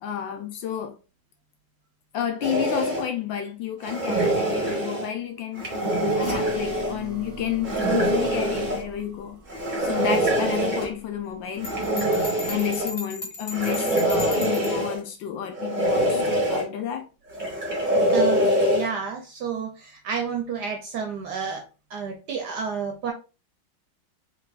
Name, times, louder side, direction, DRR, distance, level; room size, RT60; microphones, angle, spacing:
voice 1, 0.0-0.9 2.1-5.7 6.2-9.4 9.8-11.7 12.5-17.1 18.0-18.1, left 9 dB, 70° left, 1.3 m, -31 dB
sound 1, 2.4-3.0 3.8-5.1 5.5-6.9 7.6-8.8 9.5-10.9 11.6-12.9 13.5-15.0 15.5-16.6 17.3-18.9, equal, 30° right, 0.9 m, -24 dB
sound 2, 6.2-11.4 11.7-12.2 12.6-12.7, right 2 dB, 15° left, 1.1 m, -40 dB
Bell, 11.6-14.8, left 2 dB, 45° left, 0.5 m, -36 dB
voice 2, 18.1-21.6 21.9-23.1, right 6 dB, 65° right, 1.1 m, -30 dB
3.7 x 3.2 x 2.3 m
omnidirectional pair, 2.3 m